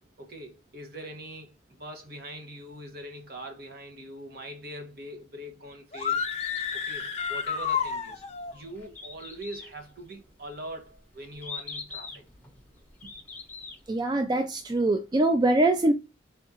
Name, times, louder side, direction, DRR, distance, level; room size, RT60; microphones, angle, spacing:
voice 1, 0.2-6.2 6.7-8.2 8.5-12.2 13.0-13.1, right 1 dB, 55° right, 1.2 m, -42 dB
sound 1, 5.9-8.5, left 7 dB, 35° left, 0.7 m, -30 dB
Bird, 6.0-14.0, left 4 dB, 10° left, 0.9 m, -44 dB
voice 2, 13.9-15.9, right 2 dB, 25° right, 0.3 m, -23 dB
4.4 x 3.7 x 2.8 m
head